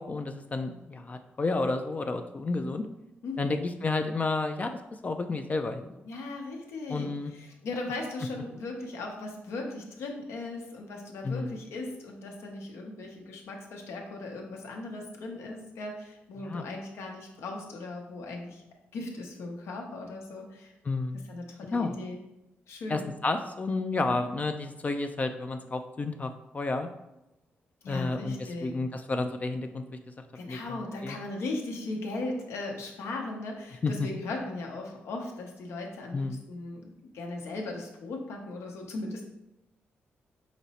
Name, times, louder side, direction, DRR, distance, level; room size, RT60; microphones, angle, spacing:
voice 1, 0.0-2.8 3.4-6.0 6.9-7.3 11.2-11.6 16.4-16.7 20.8-21.3 21.7-22.0 22.9-26.9 27.9-29.8 30.5-31.2 33.8-34.1 36.1-36.4, left 3 dB, 35° left, 7 dB, 0.3 m, -31 dB
voice 2, 3.2-3.5 6.1-18.6 18.9-20.7 21.3-22.2 22.7-23.1 24.1-24.3 27.8-28.7 30.3-39.2, left 2 dB, 80° left, 1 dB, 0.8 m, -38 dB
5.1 x 2.0 x 4.1 m, 0.93 s
cardioid pair, 70°, 4 cm